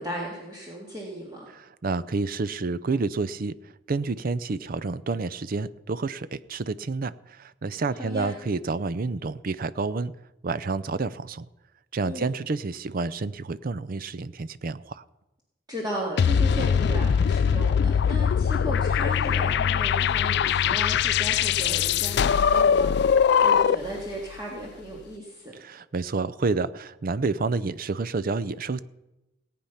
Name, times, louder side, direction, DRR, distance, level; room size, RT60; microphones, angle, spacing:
voice 1, 0.0-1.5 7.9-8.4 12.1-12.4 15.7-25.5, equal, 20° right, -2 dB, 1.9 m, -36 dB
voice 2, 1.5-3.5 3.9-10.1 10.4-11.5 11.9-15.0 25.5-28.8, right 3 dB, 50° right, 16 dB, 0.5 m, -29 dB
sound 1, 16.2-24.0, left 7 dB, 65° left, 0.4 m, -22 dB
18.0 x 8.6 x 5.7 m, 1.0 s
head